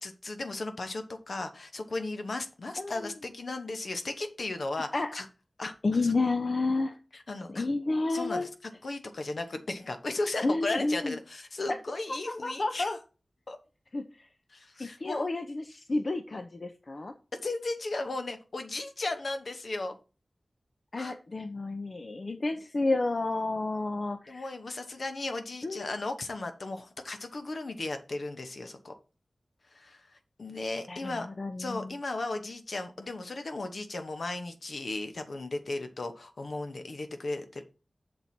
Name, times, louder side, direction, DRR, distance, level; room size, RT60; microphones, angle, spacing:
voice 1, 0.0-5.2 5.6-5.7 6.0-6.1 7.1-7.6 8.1-8.5 8.8-13.0 13.5-13.6 14.5-15.3 17.4-19.9 21.0-21.1 24.3-28.9 29.7-30.1 30.4-31.3 31.6-37.6, left 2 dB, 70° left, 7 dB, 1.1 m, -36 dB
voice 2, 2.8-3.1 4.9-5.1 5.8-7.0 7.5-8.5 10.4-11.2 12.3-13.0 13.9-14.0 14.8-17.1 20.9-24.5 25.6-25.9 30.9-31.9, left 2 dB, 55° left, 7 dB, 0.7 m, -30 dB
6.9 x 4.1 x 5.9 m, 0.32 s
wide cardioid pair, 65°, 0 cm